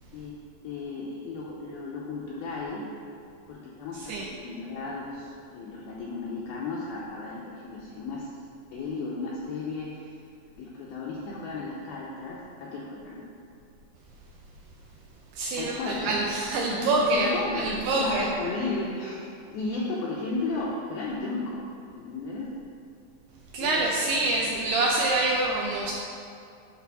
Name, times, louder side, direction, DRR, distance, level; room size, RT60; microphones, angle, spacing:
voice 1, 0.6-2.8 3.5-8.4 8.7-10.2 10.6-13.2 15.6-16.3 16.7-21.6 21.9-22.6 23.6-23.8 24.1-24.6, left 3 dB, 85° left, -4 dB, 2.2 m, -34 dB
voice 2, 15.3-17.3 17.6-18.3 23.5-25.9, right 2 dB, 80° right, -3 dB, 2.3 m, -26 dB
9.5 x 4.1 x 6.0 m, 2.5 s
omnidirectional pair, 5.3 m